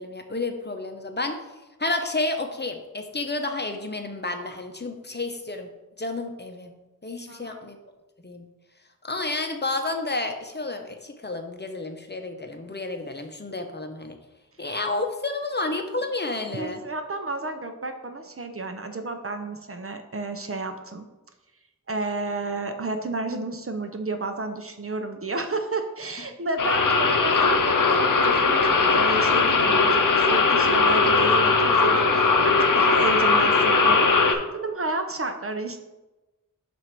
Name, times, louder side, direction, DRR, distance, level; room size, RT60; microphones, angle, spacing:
voice 1, 0.0-1.4 1.8-5.7 6.0-6.7 7.0-7.8 8.2-8.5 9.0-14.2 14.6-16.8, left 2 dB, 30° left, 5 dB, 0.7 m, -30 dB
voice 2, 7.3-7.7 16.5-21.1 21.9-35.8, right 3 dB, 45° right, 6 dB, 0.6 m, -31 dB
sound 1, 26.6-34.3, left 4 dB, 75° left, 0.6 m, -19 dB
7.7 x 2.6 x 5.9 m, 1.1 s
wide cardioid pair, 60°, 33 cm